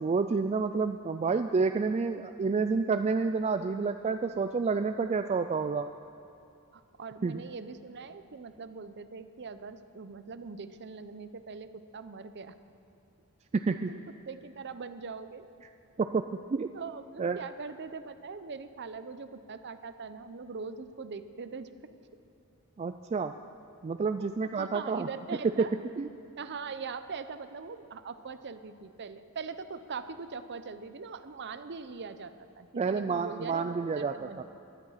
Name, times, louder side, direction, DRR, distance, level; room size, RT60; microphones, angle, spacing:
voice 1, 0.0-5.9 7.2-7.4 13.5-13.9 16.0-16.2 16.5-16.7 17.2-17.4 22.8-23.3 23.8-25.1 25.6-25.7 26.0-26.1 32.8-34.4, right 4 dB, 30° right, 8 dB, 0.3 m, -29 dB
voice 2, 6.7-12.5 13.9-15.4 16.7-21.7 24.2-24.3 24.6-25.7 26.4-34.4, right 5 dB, 50° right, 11 dB, 0.7 m, -42 dB
19.0 x 11.5 x 5.7 m, 2.6 s
head